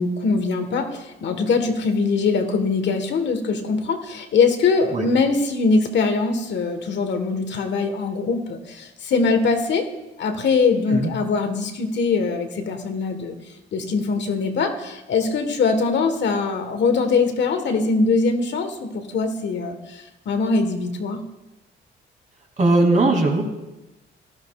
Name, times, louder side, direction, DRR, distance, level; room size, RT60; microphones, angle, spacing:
voice 1, 0.0-9.8 10.2-13.3 13.7-21.2, left 4 dB, 65° left, 7 dB, 1.4 m, -22 dB
voice 2, 22.6-23.5, right 2 dB, 40° right, 1 dB, 2.6 m, -18 dB
15.5 x 12.0 x 2.4 m, 1.0 s
cardioid pair, 90°, 20 cm